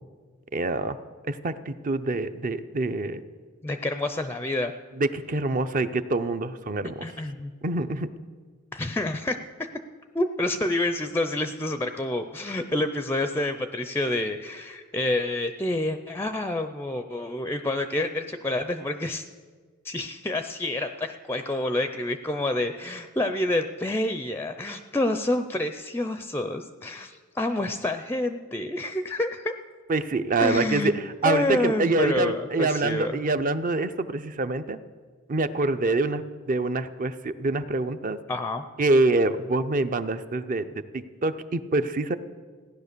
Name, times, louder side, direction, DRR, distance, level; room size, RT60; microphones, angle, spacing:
voice 1, 0.5-1.0 1.3-3.2 5.0-7.1 7.6-8.1 29.9-34.8 35.3-36.2 36.5-38.2 38.8-42.2, right 2 dB, 40° right, 11 dB, 0.6 m, -26 dB
voice 2, 3.6-4.7 7.0-7.5 8.7-9.4 10.1-19.3 19.8-29.5 30.4-30.9 31.2-33.2 38.3-38.7, left 1 dB, 10° left, 8 dB, 0.4 m, -28 dB
16.0 x 10.5 x 6.7 m, 1.5 s
head